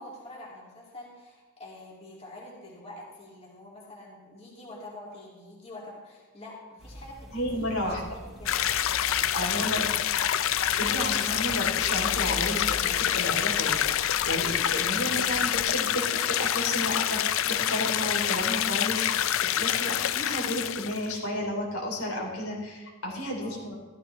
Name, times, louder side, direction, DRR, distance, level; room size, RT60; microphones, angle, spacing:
voice 1, 0.0-7.7 8.1-8.7 9.4-9.8 23.4-23.5, left 1 dB, 30° left, -5 dB, 2.6 m, -45 dB
sound 1, 6.8-15.7, equal, ahead, 1.2 m, -44 dB
voice 2, 7.3-8.0 9.3-9.9 10.4-23.7, left 1 dB, 80° left, -1 dB, 3.4 m, -32 dB
sound 2, 8.5-21.1, left 11 dB, 60° left, 0.4 m, -27 dB
13.5 x 13.0 x 3.3 m, 1.2 s
head